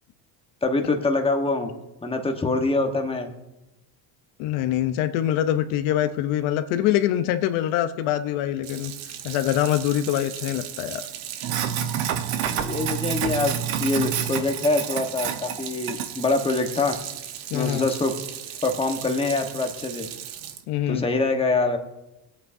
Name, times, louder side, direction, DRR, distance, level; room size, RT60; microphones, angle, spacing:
voice 1, 0.6-1.7 2.0-3.3 12.4-13.5 13.8-16.9 17.5-18.1 18.6-20.1 20.9-21.8, left 3 dB, 10° left, 4 dB, 1.1 m, -24 dB
voice 2, 4.4-8.9 9.2-11.1 17.5-17.9 20.7-21.1, left 12 dB, 75° left, 10 dB, 0.8 m, -24 dB
Sink (filling or washing), 8.6-20.6, right 9 dB, 75° right, 1.1 m, -31 dB
22.0 x 8.5 x 2.6 m, 0.96 s
cardioid pair, 130°, 50 cm